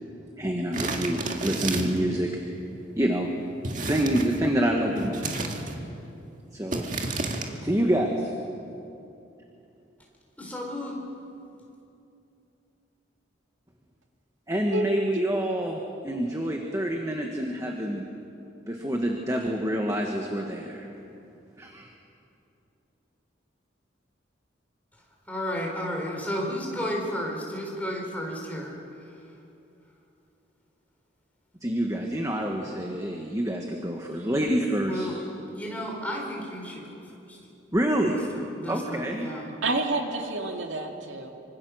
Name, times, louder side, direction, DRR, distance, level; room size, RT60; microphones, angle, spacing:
voice 1, 0.4-3.3 3.6-5.4 6.5-6.8 7.6-8.3 14.5-18.1 18.7-20.9 21.6-21.9 31.6-35.1 37.7-38.2 38.7-39.3, right 1 dB, 15° right, 1.5 m, -27 dB
sound 1, 0.7-2.1 3.6-4.4 5.0-5.8 6.7-7.5, right 2 dB, 40° right, 2.0 m, -31 dB
voice 2, 10.4-11.0 25.3-28.8 29.1-29.2 34.9-35.2 35.5-37.4 38.3-39.5, equal, 10° left, 4.4 m, -33 dB
voice 3, 14.7-15.2 39.6-41.3, right 2 dB, 85° right, 2.3 m, -29 dB
25.5 x 25.0 x 6.4 m
head